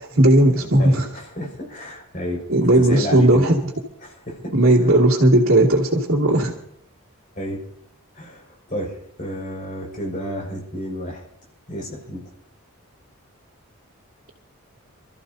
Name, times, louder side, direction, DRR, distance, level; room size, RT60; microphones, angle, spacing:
voice 1, 0.0-1.1 2.5-3.6 4.5-6.5, right 1 dB, 65° right, -4 dB, 2.4 m, -16 dB
voice 2, 0.8-2.4 2.7-3.5 4.0-4.5 7.3-7.6 8.1-11.2 11.7-12.3, equal, 35° left, -1 dB, 5.7 m, -31 dB
28.5 x 14.0 x 2.8 m, 0.72 s
head